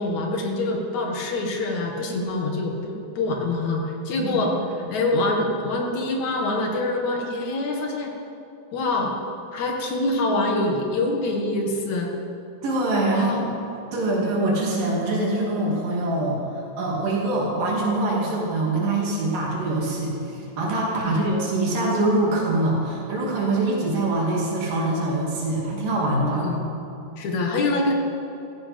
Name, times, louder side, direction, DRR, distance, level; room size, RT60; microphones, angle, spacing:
voice 1, 0.0-4.5 4.9-8.1 8.7-9.1 9.5-12.1 13.1-13.3 21.0-21.2 26.3-26.7 27.2-27.9, left 2 dB, 60° left, 1 dB, 2.8 m, -25 dB
voice 2, 12.6-13.5 13.9-26.5, right 2 dB, 70° right, -3 dB, 4.2 m, -24 dB
15.5 x 15.5 x 5.3 m, 2.9 s
omnidirectional pair, 4.1 m